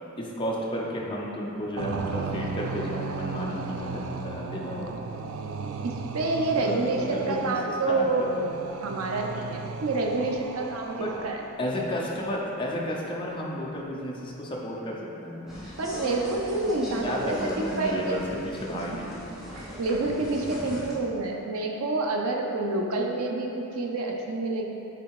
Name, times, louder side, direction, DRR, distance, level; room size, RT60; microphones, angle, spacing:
voice 1, 0.2-4.9 6.6-8.5 11.0-11.2 11.6-15.5 17.0-19.2, equal, 25° left, -3 dB, 0.7 m, -32 dB
sound 1, 1.8-11.7, right 5 dB, 70° right, 0.4 m, -36 dB
voice 2, 5.8-8.2 8.8-11.4 15.8-18.2 18.7-18.8 19.5-24.7, right 2 dB, 90° right, 1 dB, 0.7 m, -28 dB
sound 2, 15.5-20.9, equal, ahead, 1.1 m, -39 dB
7.6 x 3.5 x 4.7 m, 2.9 s
head